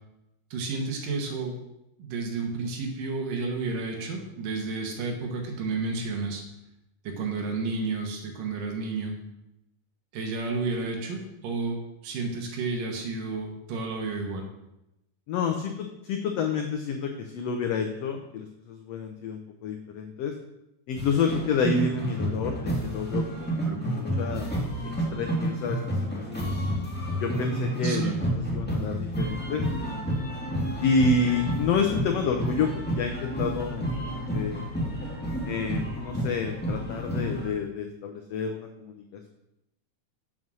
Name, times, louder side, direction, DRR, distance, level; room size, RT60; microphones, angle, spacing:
voice 1, 0.5-1.6 2.0-6.4 7.0-9.1 10.1-14.5 23.7-23.8 27.8-28.2, right 3 dB, 85° right, 2 dB, 2.9 m, -31 dB
voice 2, 15.3-20.3 20.9-24.5 24.8-26.6 27.2-30.0 30.8-34.7 35.4-39.3, left 4 dB, 75° left, 4 dB, 1.5 m, -29 dB
sound 1, 20.9-37.5, right 1 dB, 5° left, 1.3 m, -30 dB
7.6 x 6.2 x 6.2 m, 0.88 s
omnidirectional pair, 3.7 m